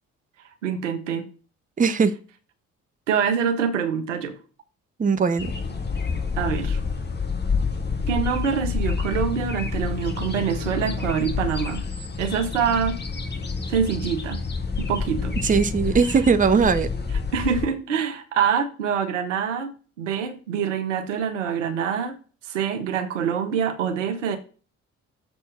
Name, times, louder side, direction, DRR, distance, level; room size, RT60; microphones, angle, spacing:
voice 1, 0.6-1.3 3.1-4.4 6.4-6.8 8.1-11.8 12.2-13.0 13.7-14.4 14.8-15.3 16.1-16.2 17.3-19.7 20.0-22.2 22.4-24.4, right 7 dB, 80° right, 1.0 m, -25 dB
voice 2, 1.8-2.1 5.0-5.5 15.4-16.9, right 5 dB, 20° right, 0.8 m, -19 dB
sound 1, 5.4-17.7, left 5 dB, 30° left, 1.8 m, -28 dB
6.9 x 4.4 x 6.2 m
figure-of-eight pair, 45°, 36 cm